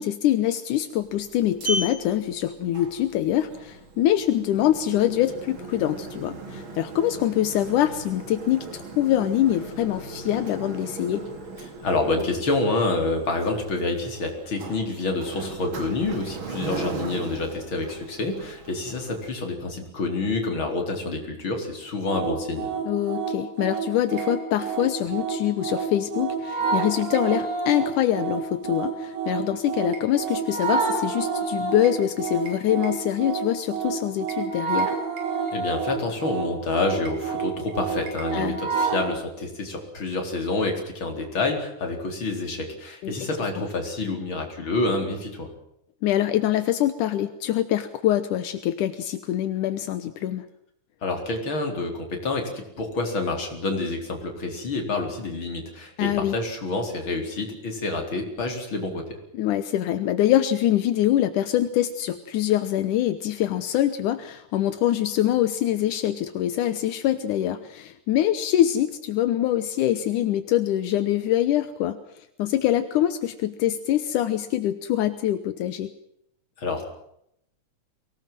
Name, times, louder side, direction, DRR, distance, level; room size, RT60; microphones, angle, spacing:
voice 1, 0.0-11.3 22.9-35.0 38.3-38.6 43.0-43.2 46.0-50.5 56.0-56.4 59.3-75.9, left 12 dB, 80° left, 11 dB, 2.5 m, -24 dB
Sliding door, 1.0-19.3, right 2 dB, 40° right, 3.0 m, -37 dB
voice 2, 11.8-22.7 35.5-45.5 51.0-59.2 76.6-76.9, left 3 dB, 40° left, 3 dB, 4.9 m, -28 dB
sound 1, 22.1-39.1, right 5 dB, 70° right, 6.4 m, -29 dB
24.0 x 19.0 x 7.7 m, 0.75 s
omnidirectional pair, 3.6 m